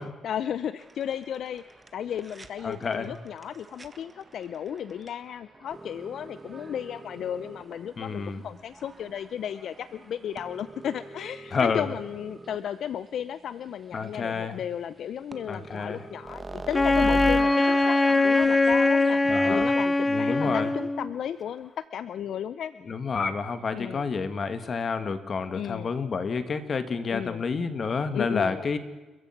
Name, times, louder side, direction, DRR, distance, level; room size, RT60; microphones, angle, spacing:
voice 1, 0.0-1.6 1.9-22.7 23.7-24.1 25.5-25.9 27.1-27.4 28.1-28.7, left 9 dB, 65° left, 14 dB, 0.6 m, -34 dB
sound 1, 0.8-12.7 13.3-13.4 13.6-13.7 14.0-14.1 15.0-15.1 15.3-19.8, right 2 dB, 25° right, 1.6 m, -41 dB
voice 2, 2.6-3.1 8.0-8.4 11.5-11.9 13.9-14.6 15.5-16.0 19.3-19.7 20.1-20.7 22.9-28.8, left 5 dB, 45° left, 10 dB, 2.1 m, -29 dB
Wind instrument woodwind instrument, 16.7-21.1, left 2 dB, 20° left, 0.9 m, -22 dB
30.0 x 15.0 x 6.0 m, 1.2 s
cardioid pair, 90°, 0 cm